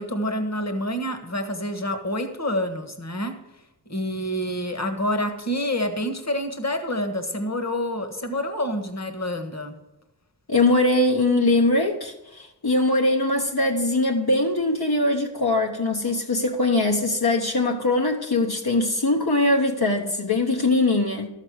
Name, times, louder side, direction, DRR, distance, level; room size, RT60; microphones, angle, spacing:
voice 1, 0.0-3.4 3.9-9.7, left 1 dB, 40° left, 7 dB, 1.5 m, -27 dB
voice 2, 10.5-21.3, left 2 dB, 65° left, 1 dB, 1.2 m, -22 dB
13.0 x 6.5 x 6.3 m, 0.96 s
wide cardioid pair, 40°, 40 cm